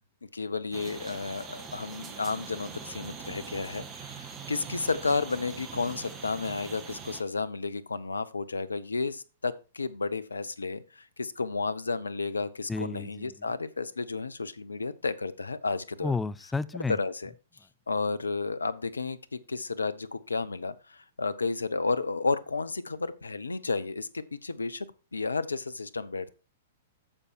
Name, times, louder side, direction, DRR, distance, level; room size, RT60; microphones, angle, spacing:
voice 1, 0.3-16.1 16.9-17.3 17.9-24.9 25.1-26.3, left 4 dB, 80° left, 0.7 m, -32 dB
sound 1, 0.7-7.2, right 6 dB, 25° right, 1.7 m, -43 dB
voice 2, 12.7-13.3 16.0-17.0, left 4 dB, 10° left, 0.5 m, -31 dB
8.9 x 6.9 x 4.6 m
figure-of-eight pair, 105°, 0 cm